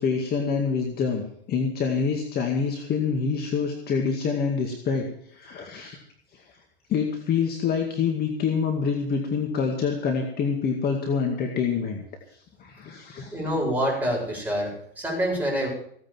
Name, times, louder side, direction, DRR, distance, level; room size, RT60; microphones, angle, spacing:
voice 1, 0.0-5.1 5.3-6.0 6.3-6.4 6.9-12.0 12.6-13.3, left 5 dB, 30° left, 3 dB, 2.2 m, -26 dB
voice 2, 13.3-15.7, equal, 5° right, -3 dB, 7.9 m, -26 dB
16.5 x 9.7 x 7.5 m, 0.66 s
hypercardioid pair, 115°, 32 cm